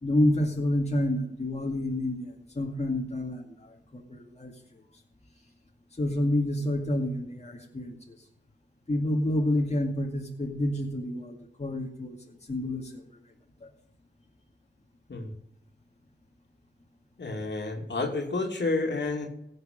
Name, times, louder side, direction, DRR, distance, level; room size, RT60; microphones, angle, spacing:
voice 1, 0.0-4.5 6.0-8.2 8.9-13.0 13.6-13.7, left 1 dB, 35° left, 0 dB, 2.1 m, -29 dB
voice 2, 17.2-19.3, left 3 dB, 70° left, 1 dB, 2.6 m, -30 dB
16.5 x 6.7 x 5.3 m, 0.77 s
wide cardioid pair, 65°, 19 cm